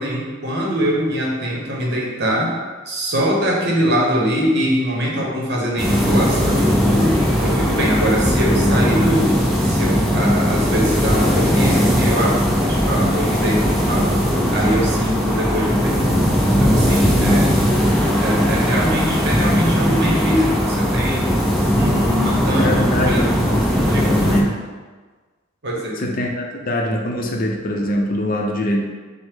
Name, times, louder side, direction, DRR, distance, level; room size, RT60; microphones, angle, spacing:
voice 1, 0.0-2.6 2.9-9.3 9.6-14.1 14.5-16.0 16.6-17.5 18.2-21.3 21.7-22.7 23.0-23.3 23.9-24.1 25.6-26.0, equal, 55° right, -3 dB, 0.9 m, -22 dB
sound 1, 5.8-24.4, equal, ahead, 0.5 m, -18 dB
voice 2, 17.2-17.6 22.5-24.6 26.0-28.8, left 1 dB, 45° left, 1 dB, 0.6 m, -23 dB
6.1 x 2.1 x 3.5 m, 1.4 s
head